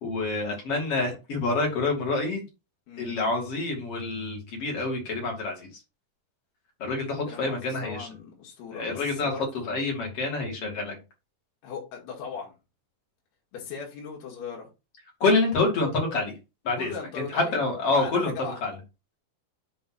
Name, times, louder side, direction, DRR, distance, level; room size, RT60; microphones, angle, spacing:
voice 1, 0.0-2.4 3.0-5.7 6.8-8.1 8.7-9.3 9.7-11.0 15.2-16.4 16.6-18.7, left 3 dB, 40° left, 0 dB, 2.8 m, -27 dB
voice 2, 2.9-3.2 7.3-9.7 11.6-12.5 13.5-14.7 16.8-17.6 17.9-18.6, left 6 dB, 80° left, -2 dB, 4.0 m, -38 dB
8.5 x 3.5 x 4.1 m, 0.28 s
omnidirectional pair, 4.6 m